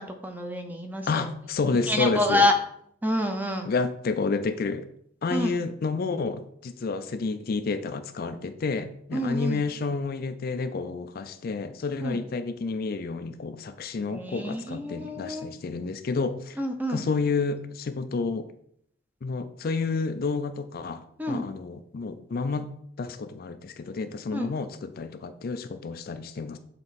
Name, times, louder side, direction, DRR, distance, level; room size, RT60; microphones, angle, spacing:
voice 1, 0.0-1.3 1.9-2.5 3.0-3.7 5.3-5.5 9.1-9.6 12.0-12.2 14.1-15.5 16.6-17.0 21.2-21.5 24.3-24.5, left 1 dB, 10° right, 5 dB, 0.6 m, -27 dB
voice 2, 1.1-2.5 3.6-4.8 5.2-16.6 16.9-18.5 19.2-26.6, left 4 dB, 45° left, 10 dB, 0.4 m, -30 dB
6.8 x 4.1 x 4.1 m, 0.68 s
head